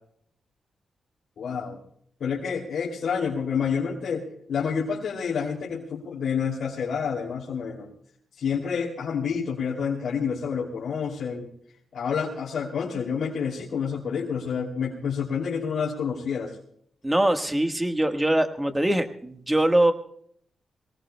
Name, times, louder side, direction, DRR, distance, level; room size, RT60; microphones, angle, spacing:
voice 1, 1.4-1.8 2.2-7.9 8.4-11.5 11.9-16.6, left 6 dB, 70° left, -3 dB, 2.6 m, -28 dB
voice 2, 17.0-19.9, right 1 dB, 15° right, 7 dB, 1.3 m, -22 dB
23.5 x 18.5 x 2.2 m, 0.65 s
cardioid pair, 90°, 0 cm